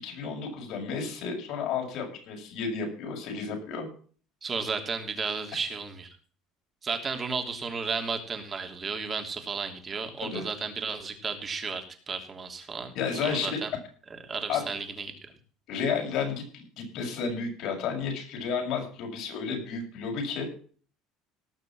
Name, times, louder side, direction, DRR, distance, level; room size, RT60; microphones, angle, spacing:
voice 1, 0.0-3.9 10.3-10.4 12.9-13.5 14.5-14.7 15.7-20.5, left 5 dB, 60° left, 2 dB, 6.8 m, -32 dB
voice 2, 4.4-6.1 6.8-12.9 13.2-13.7 14.1-15.1, right 5 dB, 25° right, 5 dB, 3.1 m, -33 dB
19.0 x 6.6 x 6.1 m, 0.43 s
cardioid pair, 125°, 0 cm